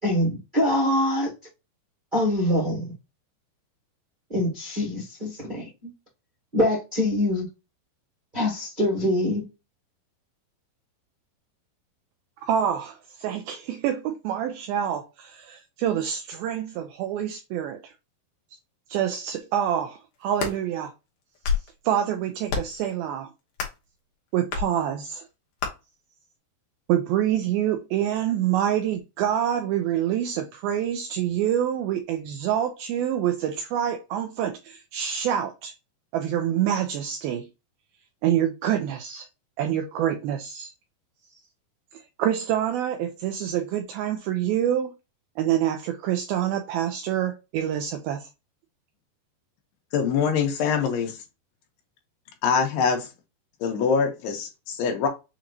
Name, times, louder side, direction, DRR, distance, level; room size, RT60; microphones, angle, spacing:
voice 1, 0.0-1.3 2.1-2.8 4.3-5.9 6.5-7.5 8.3-9.4, left 1 dB, 30° right, 0.8 m, -24 dB
voice 2, 12.4-17.9 18.9-20.9 21.8-23.3 24.3-25.3 26.9-35.7 36.1-37.5 38.2-39.3 39.6-40.7 41.9-45.0 45.4-48.3, right 10 dB, 85° right, 2.1 m, -26 dB
sound 1, 20.1-20.6 21.2-21.7 22.5-22.8 23.5-23.9 24.5-24.7 25.6-25.7, left 6 dB, 65° left, 2.2 m, -28 dB
voice 3, 49.9-51.2 52.4-53.1 53.6-55.1, left 6 dB, 80° left, 3.0 m, -24 dB
7.1 x 2.9 x 2.5 m
omnidirectional pair, 4.9 m